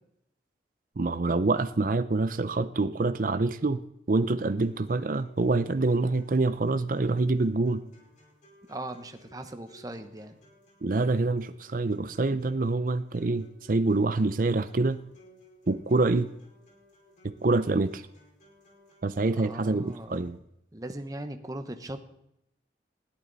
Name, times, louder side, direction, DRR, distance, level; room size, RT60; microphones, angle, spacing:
voice 1, 1.0-3.8 4.1-7.8 10.8-15.0 15.7-16.3 17.2-18.0 19.0-20.4, right 3 dB, 50° right, 11 dB, 0.6 m, -26 dB
sound 1, 4.4-20.4, equal, 40° left, 5.1 m, -58 dB
voice 2, 8.7-10.4 19.4-20.2 20.7-22.0, right 1 dB, 20° right, 7 dB, 1.0 m, -39 dB
20.0 x 14.0 x 4.1 m, 0.81 s
head